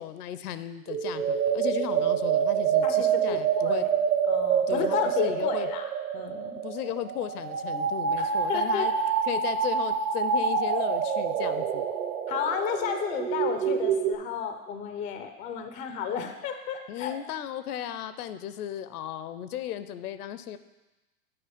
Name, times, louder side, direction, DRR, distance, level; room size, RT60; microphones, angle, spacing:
voice 1, 0.0-3.9 4.7-5.7 6.6-8.9 9.3-11.9 16.9-20.6, left 11 dB, 75° left, 12 dB, 0.6 m, -35 dB
sound 1, 0.9-14.2, right 7 dB, 35° right, 0.8 m, -27 dB
voice 2, 2.8-3.9 4.3-6.6 8.2-8.9 12.3-17.2, left 7 dB, 20° left, 7 dB, 0.4 m, -32 dB
8.7 x 4.2 x 5.0 m, 1.1 s
hypercardioid pair, 110°, 47 cm